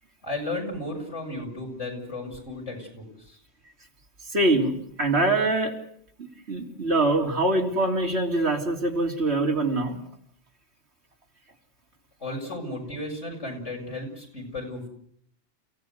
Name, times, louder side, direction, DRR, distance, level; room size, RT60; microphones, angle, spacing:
voice 1, 0.2-3.4 12.2-14.9, left 2 dB, 80° left, 1 dB, 7.2 m, -34 dB
voice 2, 4.3-5.7 6.5-10.0, right 2 dB, 65° right, 1 dB, 3.6 m, -24 dB
29.5 x 17.0 x 8.1 m, 0.68 s
omnidirectional pair, 1.2 m